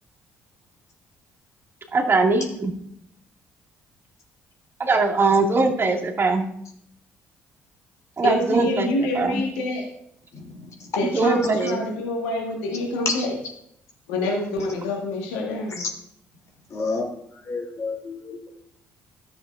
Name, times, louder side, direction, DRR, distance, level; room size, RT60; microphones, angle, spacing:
voice 1, 1.9-2.7 4.8-6.4 8.2-9.4 11.0-11.8, right 3 dB, 35° right, -2 dB, 2.3 m, -21 dB
voice 2, 8.2-9.9 11.0-13.3 14.1-15.8, left 2 dB, 85° left, 0 dB, 1.7 m, -26 dB
voice 3, 16.7-17.1 17.5-18.5, left 3 dB, 50° left, 0 dB, 3.2 m, -29 dB
14.5 x 6.9 x 2.6 m, 0.73 s
hypercardioid pair, 55°, 7 cm